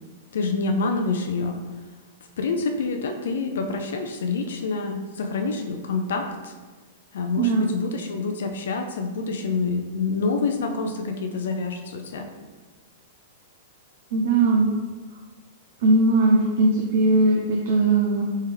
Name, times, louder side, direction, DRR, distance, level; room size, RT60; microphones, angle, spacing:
voice 1, 0.3-1.6 2.4-6.5 7.1-12.3, left 4 dB, 80° left, 4 dB, 0.4 m, -27 dB
voice 2, 7.4-7.7 14.1-14.7 15.8-18.2, right 2 dB, 65° right, -1 dB, 0.6 m, -19 dB
4.2 x 3.5 x 3.4 m, 1.4 s
hypercardioid pair, 145°, 0 cm